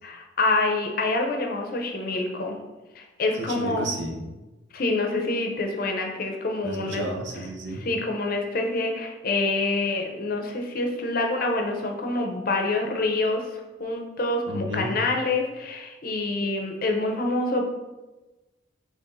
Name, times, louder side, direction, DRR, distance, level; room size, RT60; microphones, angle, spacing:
voice 1, 0.0-2.6 3.0-3.9 4.7-7.0 7.8-17.7, left 2 dB, 50° left, 2 dB, 0.6 m, -26 dB
voice 2, 3.3-4.4 6.6-7.8 14.5-14.9, right 1 dB, 75° right, 1 dB, 0.7 m, -32 dB
5.5 x 3.2 x 2.6 m, 1.1 s
head